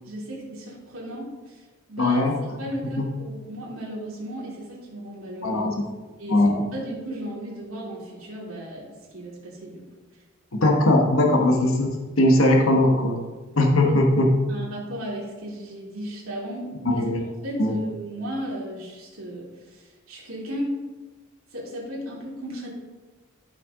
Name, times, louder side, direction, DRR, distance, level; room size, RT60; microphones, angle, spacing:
voice 1, 0.0-2.2 2.6-5.6 6.2-6.4 6.7-9.8 13.8-14.0 14.5-17.0 17.4-20.8 21.5-22.7, equal, 85° right, -4 dB, 2.7 m, -35 dB
voice 2, 2.0-2.4 2.9-3.1 5.4-5.8 6.3-6.7 10.5-13.2 13.6-14.3 16.8-17.3 17.6-17.8, left 1 dB, 75° left, 1 dB, 1.2 m, -20 dB
12.5 x 5.8 x 3.7 m, 1.3 s
head